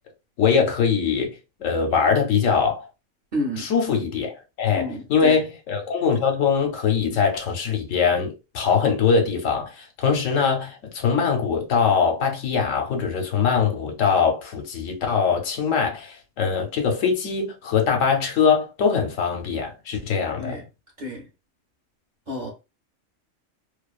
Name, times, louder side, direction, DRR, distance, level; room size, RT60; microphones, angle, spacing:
voice 1, 0.4-1.3 1.6-2.9 3.6-4.3 4.6-20.6, left 6 dB, 75° left, 1.0 m, -22 dB
voice 2, 3.3-3.7 4.7-5.4 20.3-20.6 21.0-21.2 22.3-22.5, left 1 dB, 45° right, 0.8 m, -30 dB
2.5 x 2.3 x 2.3 m
omnidirectional pair, 1.4 m